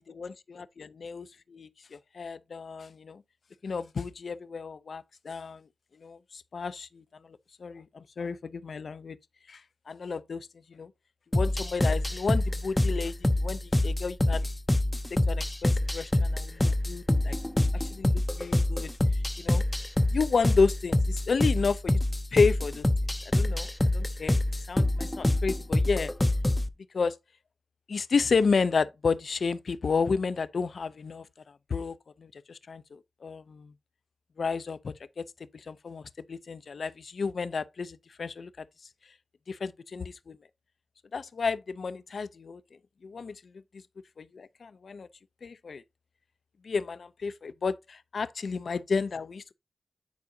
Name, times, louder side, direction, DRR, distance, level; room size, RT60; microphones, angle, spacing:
voice 1, 0.0-3.2 3.6-5.7 6.0-9.2 9.5-9.6 9.9-10.9 11.3-14.5 15.1-17.4 17.7-18.9 19.4-19.6 20.1-22.0 22.3-22.9 23.3-24.4 24.7-26.1 26.9-27.2 27.9-33.7 34.4-35.2 35.7-36.0 36.3-38.5 39.5-40.4 41.1-42.6 43.0-43.4 44.2-45.1 45.4-45.8 46.6-49.5, left 5 dB, 75° left, 0.4 m, -31 dB
sound 1, 11.3-26.7, left 1 dB, 15° left, 0.5 m, -26 dB
9.4 x 4.8 x 2.7 m
wide cardioid pair, 110°, 0 cm